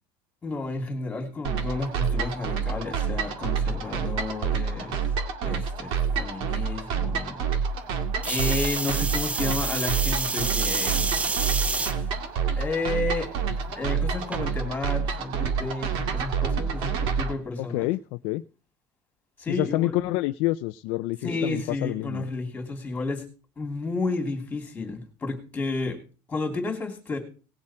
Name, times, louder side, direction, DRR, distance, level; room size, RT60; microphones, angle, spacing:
voice 1, 0.4-5.2 5.4-7.5 8.2-11.0 11.8-12.1 12.5-17.9 19.4-19.9 21.2-23.2 23.6-26.0 26.3-27.2, left 3 dB, 15° left, 4 dB, 3.0 m, -32 dB
sound 1, 1.4-17.3, right 6 dB, 50° right, 2.0 m, -28 dB
sound 2, 8.2-11.9 12.6-13.0 14.3-14.4, right 4 dB, 10° right, 0.5 m, -28 dB
voice 2, 17.6-18.4 19.5-22.2, left 18 dB, 55° left, 10 dB, 0.5 m, -28 dB
18.5 x 7.5 x 4.4 m, 0.36 s
cardioid pair, 170°, 11 cm